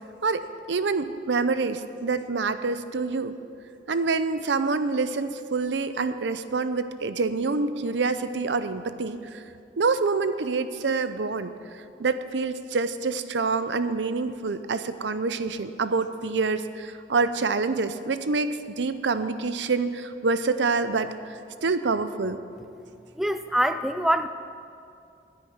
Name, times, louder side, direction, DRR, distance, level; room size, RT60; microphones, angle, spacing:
voice 1, 0.2-3.4 3.9-9.4 9.8-11.5 12.0-18.5 18.8-22.4, right 4 dB, 90° right, 11 dB, 0.6 m, -26 dB
voice 2, 23.2-24.3, right 1 dB, ahead, 9 dB, 0.3 m, -24 dB
10.5 x 8.8 x 9.4 m, 2.5 s
head